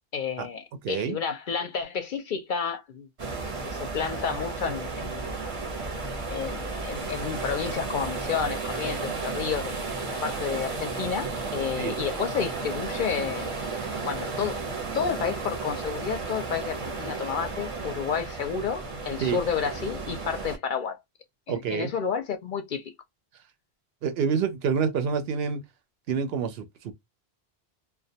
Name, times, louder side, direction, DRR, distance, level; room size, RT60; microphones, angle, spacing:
voice 1, 0.1-3.1 3.7-5.3 6.3-13.5 14.0-14.6 14.9-21.0 21.5-22.9, left 7 dB, 60° left, 0.6 m, -31 dB
voice 2, 0.8-1.2 11.8-11.9 19.2-19.4 21.5-21.9 24.0-25.6 26.1-26.9, right 6 dB, 75° right, 0.8 m, -27 dB
sound 1, 3.2-20.6, right 3 dB, 35° right, 0.7 m, -33 dB
2.2 x 2.1 x 2.6 m
omnidirectional pair, 1.1 m